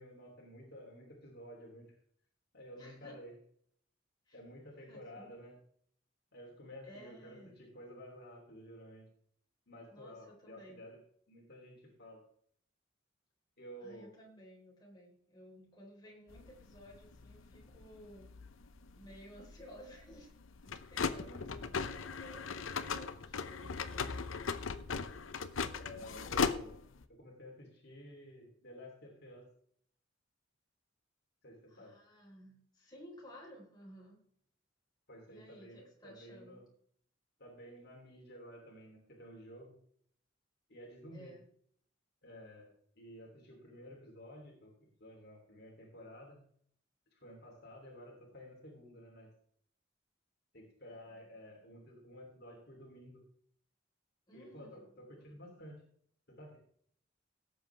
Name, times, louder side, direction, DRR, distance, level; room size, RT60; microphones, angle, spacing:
voice 1, 0.0-1.9 2.5-3.3 4.3-5.6 6.3-9.1 9.7-11.0 11.3-12.2 13.6-14.1 21.2-21.7 25.8-26.8 27.1-29.5 31.4-31.9 35.1-36.6 37.4-39.7 40.7-41.3 42.2-46.4 47.1-49.3 50.5-53.2 54.3-55.8 56.3-56.6, equal, 55° left, -1 dB, 3.1 m, -52 dB
voice 2, 2.7-3.2 4.3-4.4 4.8-5.3 6.8-7.5 9.9-10.8 13.8-18.3 18.9-20.3 20.6-24.5 31.7-34.2 35.3-36.6 41.1-41.5 50.9-51.0 54.3-55.6, equal, 20° left, -3 dB, 4.0 m, -56 dB
sound 1, 16.3-27.1, left 5 dB, 90° left, 0.8 m, -39 dB
17.5 x 8.0 x 3.4 m, 0.63 s
head